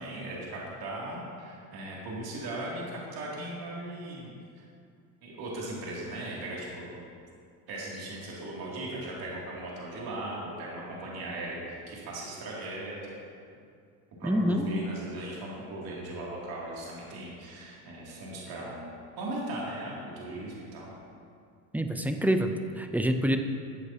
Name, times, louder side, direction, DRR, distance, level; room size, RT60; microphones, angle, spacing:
voice 1, 0.0-4.3 5.2-7.0 7.7-13.2 14.2-20.9, right 1 dB, 50° right, -5 dB, 2.6 m, -38 dB
voice 2, 14.2-14.6 21.7-23.4, equal, 5° right, 6 dB, 0.5 m, -26 dB
13.5 x 8.2 x 2.8 m, 2.3 s
supercardioid pair, 85°, 46 cm